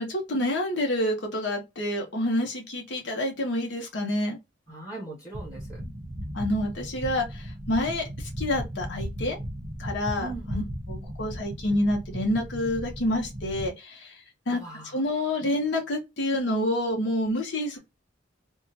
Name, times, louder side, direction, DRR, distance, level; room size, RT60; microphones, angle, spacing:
voice 1, 0.0-4.4 6.3-8.0 8.4-9.4 9.8-10.6 10.9-14.1 14.5-14.6 14.9-17.8, left 1 dB, 75° left, 0.8 m, -28 dB
voice 2, 4.7-5.8 10.2-10.7 14.5-15.0 17.7-17.8, right 3 dB, 20° left, 1.0 m, -40 dB
sound 1, 5.3-13.7, equal, 45° right, 0.7 m, -36 dB
3.5 x 2.2 x 2.7 m
head